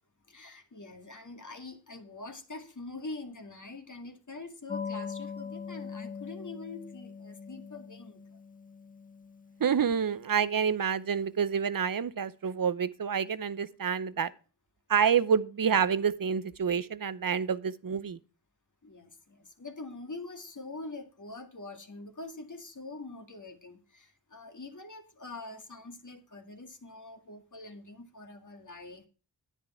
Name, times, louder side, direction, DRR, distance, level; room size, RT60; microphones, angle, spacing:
voice 1, 0.3-8.4 18.8-29.1, left 3 dB, 40° left, 2.0 m, -44 dB
sound 1, 4.7-10.9, left 6 dB, 20° left, 0.5 m, -42 dB
voice 2, 9.6-14.3 14.9-18.2, right 7 dB, 50° right, 0.8 m, -28 dB
10.0 x 9.6 x 4.3 m
cardioid pair, 55°, 44 cm